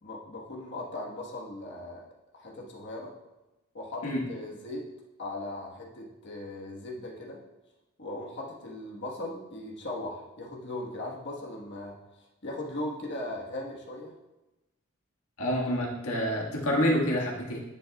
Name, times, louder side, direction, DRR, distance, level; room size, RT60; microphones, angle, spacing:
voice 1, 0.0-2.0 2.3-3.1 3.7-4.8 5.2-7.4 8.0-11.9 12.4-14.1, left 1 dB, 55° left, -1 dB, 1.4 m, -38 dB
voice 2, 15.4-17.6, equal, 85° left, -2 dB, 1.7 m, -27 dB
10.5 x 7.6 x 2.3 m, 1.0 s
head